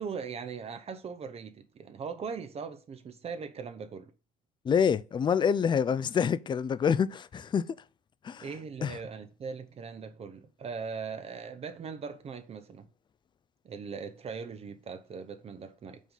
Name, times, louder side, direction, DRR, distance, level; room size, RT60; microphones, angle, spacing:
voice 1, 0.0-4.1 8.4-12.9 13.6-16.0, right 5 dB, 35° right, 0.7 m, -40 dB
voice 2, 4.6-7.6 8.2-8.4 8.8-9.0, left 7 dB, 25° left, 0.4 m, -26 dB
5.0 x 3.8 x 5.3 m
supercardioid pair, 80°, 17 cm